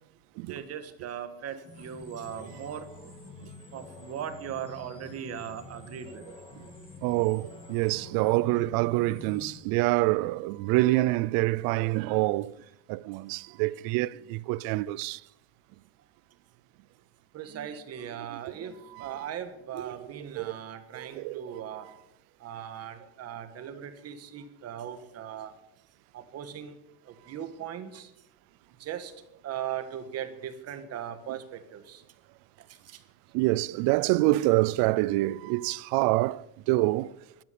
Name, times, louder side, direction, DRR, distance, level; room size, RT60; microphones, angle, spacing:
voice 1, 0.5-2.9 3.7-6.4 17.3-21.9 22.4-25.5 26.1-26.7 27.1-28.1 28.8-29.1 29.4-32.0 32.9-33.0, right 9 dB, 35° right, 1.6 m, -39 dB
sound 1, 1.6-9.6, left 3 dB, 10° left, 2.3 m, -47 dB
voice 2, 7.0-12.5 12.9-15.2 18.2-18.4 18.9-19.2 19.7-20.5 20.9-21.8 31.3-31.4 33.3-37.1, right 19 dB, 55° right, 0.5 m, -27 dB
16.5 x 12.5 x 6.9 m
cardioid pair, 165°, 43 cm